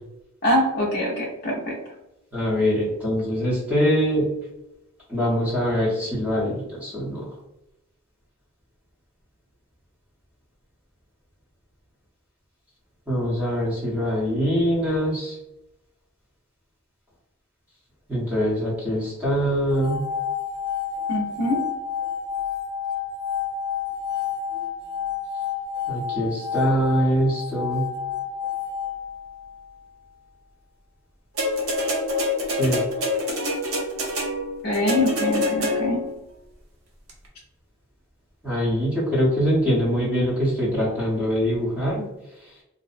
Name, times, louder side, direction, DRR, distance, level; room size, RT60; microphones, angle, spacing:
voice 1, 0.4-1.8 21.1-21.6 34.6-36.0, left 1 dB, 45° left, -4 dB, 0.4 m, -24 dB
voice 2, 2.3-4.3 5.1-7.3 13.1-15.4 18.1-20.0 25.9-27.8 32.5-32.8 38.4-42.1, equal, 5° right, -8 dB, 0.8 m, -23 dB
sound 1, 19.7-29.9, left 8 dB, 45° right, 1.2 m, -30 dB
sound 2, 31.4-36.1 37.1-37.2, left 2 dB, 75° right, 0.6 m, -26 dB
2.6 x 2.0 x 2.4 m, 0.93 s
head